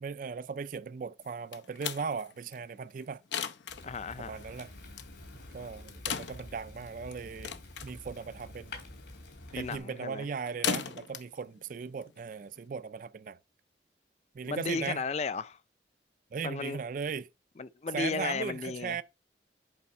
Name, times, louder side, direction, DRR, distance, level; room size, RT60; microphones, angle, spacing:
voice 1, 0.0-3.2 4.2-4.7 5.3-7.5 7.8-8.8 9.5-13.4 14.3-15.0 16.3-17.3 17.9-19.0, right 5 dB, 45° right, 0.3 m, -38 dB
sound 1, 1.2-12.7, left 7 dB, 80° left, 0.7 m, -40 dB
Fire, 3.7-9.8, left 1 dB, 65° left, 3.2 m, -48 dB
voice 2, 3.8-4.4 9.6-10.3 14.5-15.6 16.4-16.8 17.6-19.0, left 4 dB, 35° left, 0.4 m, -34 dB
8.5 x 4.1 x 5.4 m
head